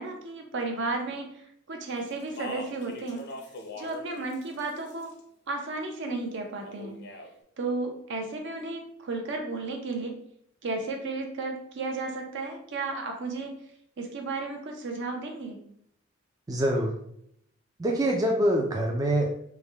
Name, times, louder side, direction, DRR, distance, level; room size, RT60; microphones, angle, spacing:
voice 1, 0.0-3.2 3.7-5.1 5.5-7.0 7.6-10.1 10.6-13.5 14.0-15.6, right 3 dB, 60° right, 3 dB, 0.6 m, -33 dB
Speech, 2.1-4.1 4.3-5.2 6.6-7.3, left 2 dB, 55° left, 0.5 m, -41 dB
voice 2, 16.5-16.9 17.8-19.3, right 1 dB, 20° right, 0 dB, 0.3 m, -25 dB
3.5 x 2.1 x 3.3 m, 0.70 s
head